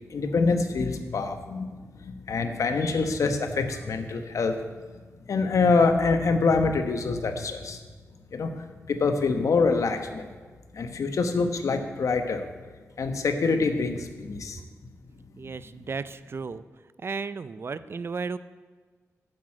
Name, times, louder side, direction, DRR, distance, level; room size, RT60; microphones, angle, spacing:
voice 1, 0.0-4.6 5.3-7.8 8.3-8.5 8.9-10.3 10.7-12.5 13.0-14.6, left 4 dB, 75° left, 7 dB, 1.1 m, -25 dB
voice 2, 15.4-16.6 17.0-18.4, right 4 dB, 45° right, 14 dB, 0.5 m, -34 dB
9.7 x 7.9 x 7.5 m, 1.5 s
wide cardioid pair, 90°, 6 cm